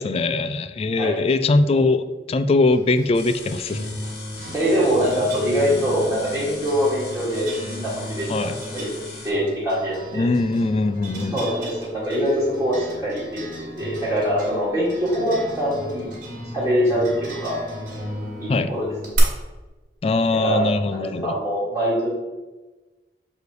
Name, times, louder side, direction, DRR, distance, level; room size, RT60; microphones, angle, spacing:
voice 1, 0.0-3.9 8.3-8.6 10.1-11.4 18.5-18.7 20.0-21.3, left 3 dB, 35° left, 12 dB, 0.3 m, -21 dB
sound 1, 2.7-19.2, equal, 55° right, 2.1 m, -35 dB
sound 2, 3.1-9.3, left 4 dB, 70° left, 1.2 m, -39 dB
voice 2, 4.5-8.9 9.2-10.3 11.3-13.3 13.8-16.1 16.5-17.6 18.4-18.9 20.4-22.1, equal, 10° right, -11 dB, 1.9 m, -23 dB
6.9 x 3.2 x 4.8 m, 1.2 s
head